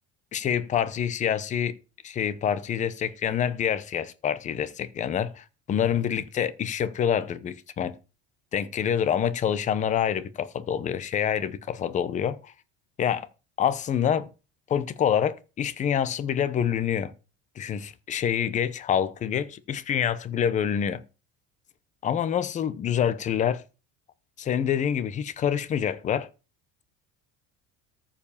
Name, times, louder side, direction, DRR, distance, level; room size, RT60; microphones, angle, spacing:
voice 1, 0.3-1.7 2.0-7.9 8.5-12.5 13.0-13.3 13.6-14.3 14.7-17.1 17.6-21.0 22.0-23.6 24.4-26.3, left 8 dB, 25° left, 0.7 m, -26 dB
14.0 x 5.0 x 7.0 m
cardioid pair, 175°, 31 cm